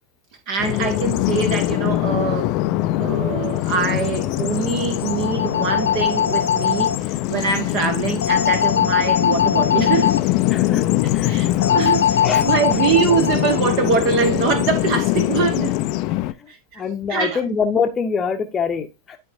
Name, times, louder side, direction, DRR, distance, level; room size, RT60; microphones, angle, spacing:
voice 1, 0.5-2.6 3.0-10.1 11.3-15.8 16.5-16.8 17.1-17.6, right 6 dB, 45° right, 1.3 m, -23 dB
Bird vocalization bird call bird song, 0.6-16.3, left 16 dB, 40° left, 0.5 m, -22 dB
sound 1, 5.0-7.0 8.2-10.2 11.6-13.6, left 8 dB, 65° left, 0.9 m, -21 dB
voice 2, 10.5-10.8 11.1-11.9 12.2-12.4 16.8-19.2, left 6 dB, 20° left, 0.9 m, -24 dB
11.5 x 4.5 x 2.7 m
figure-of-eight pair, 90°, 0 cm